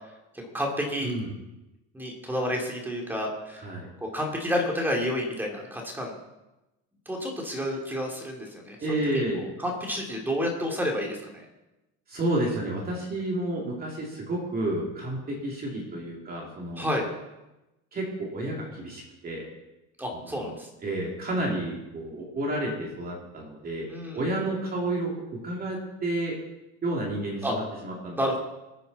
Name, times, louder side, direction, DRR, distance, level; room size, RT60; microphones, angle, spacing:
voice 1, 0.3-1.1 1.9-3.7 4.0-6.1 7.1-8.8 9.1-11.5 16.8-17.0 20.0-20.7 23.9-24.2 27.4-27.5 28.2-28.4, equal, 5° right, 0 dB, 2.6 m, -30 dB
voice 2, 8.8-9.4 12.1-16.9 17.9-19.5 20.3-20.5 20.8-23.9 24.1-26.4 26.8-28.2, right 1 dB, 25° right, -2 dB, 2.8 m, -30 dB
22.0 x 9.3 x 4.1 m, 0.98 s
cardioid pair, 160°, 33 cm